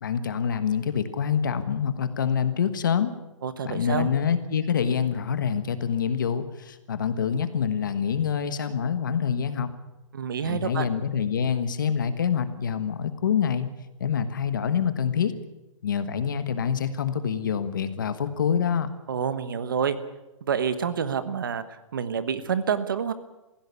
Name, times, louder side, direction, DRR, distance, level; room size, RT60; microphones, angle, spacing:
voice 1, 0.0-3.1 3.6-9.7 10.4-13.7 14.0-15.3 15.8-18.9, left 7 dB, 40° left, 11 dB, 1.4 m, -26 dB
voice 2, 3.4-4.1 10.1-10.9 19.1-20.0 20.4-23.1, right 7 dB, 40° right, 12 dB, 1.2 m, -28 dB
18.0 x 16.0 x 9.6 m, 0.98 s
hypercardioid pair, 180°, 16 cm